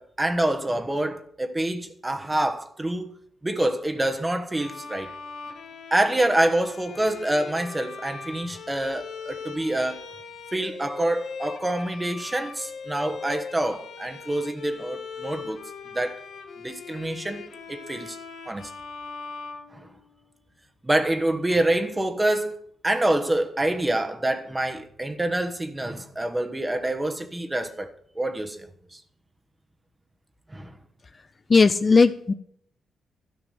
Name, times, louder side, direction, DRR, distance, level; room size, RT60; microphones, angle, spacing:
voice 1, 0.0-3.1 3.4-5.1 5.9-10.0 10.5-15.6 15.9-16.2 16.6-18.2 18.5-18.7 19.7-19.9 20.8-22.6 22.8-29.0 30.5-30.8, right 1 dB, 15° right, 1.3 m, -26 dB
Bowed string instrument, 4.5-20.4, left 5 dB, 85° left, 1.6 m, -40 dB
voice 2, 31.5-32.3, left 4 dB, 35° left, 0.6 m, -17 dB
13.0 x 6.0 x 7.8 m
cardioid pair, 110°, 0 cm